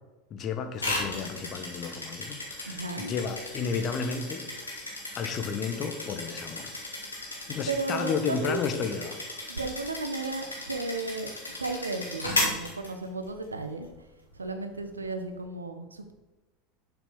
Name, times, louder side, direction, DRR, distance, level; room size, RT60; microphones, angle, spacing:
voice 1, 0.3-4.7 5.2-6.7 7.5-9.2, left 6 dB, 40° left, 6 dB, 1.4 m, -32 dB
sound 1, 0.8-13.4, left 2 dB, 90° left, 2.3 m, -35 dB
voice 2, 2.7-3.1 7.3-8.6 9.5-11.3 11.6-13.9 14.3-16.1, right 3 dB, 90° right, 7 dB, 0.9 m, -34 dB
7.0 x 6.5 x 6.2 m, 1.1 s
figure-of-eight pair, 80°, 0 cm